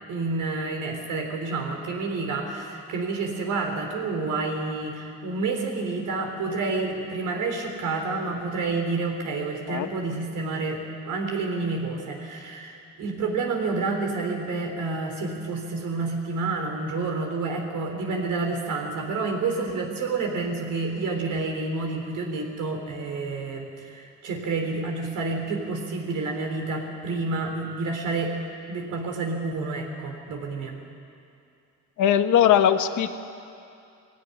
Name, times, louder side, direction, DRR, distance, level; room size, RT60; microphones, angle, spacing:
voice 1, 0.1-28.3 28.7-30.8, right 3 dB, 85° right, 2 dB, 3.9 m, -29 dB
voice 2, 32.0-33.1, left 10 dB, 75° left, 8 dB, 1.2 m, -19 dB
20.0 x 17.0 x 9.8 m, 2.5 s
cardioid pair, 90°, 30 cm